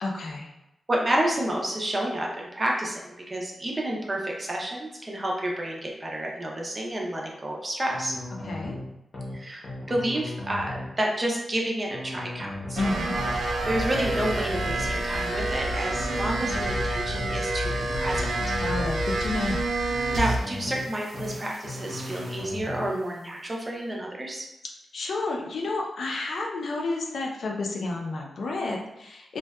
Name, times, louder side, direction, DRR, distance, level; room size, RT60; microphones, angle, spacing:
voice 1, 0.0-0.5 8.4-8.8 12.8-13.2 18.6-19.7 24.9-29.4, left 2 dB, 65° left, 0 dB, 0.4 m, -30 dB
voice 2, 0.9-8.2 9.3-12.8 13.6-18.3 20.1-24.4, right 1 dB, 25° right, -1 dB, 0.4 m, -30 dB
sound 1, 7.9-8.8 9.1-9.4 9.6-10.9 11.9-12.8 13.1-13.4 13.6-14.9 15.9-16.8 17.1-17.4 17.6-18.9 19.9-20.8 21.1-21.4 21.6-22.9, left 1 dB, 40° left, 0.7 m, -36 dB
sound 2, 12.8-20.6 20.9-22.4, right 1 dB, 90° right, 0.3 m, -29 dB
2.6 x 2.2 x 2.2 m, 0.89 s
wide cardioid pair, 150°, 0 cm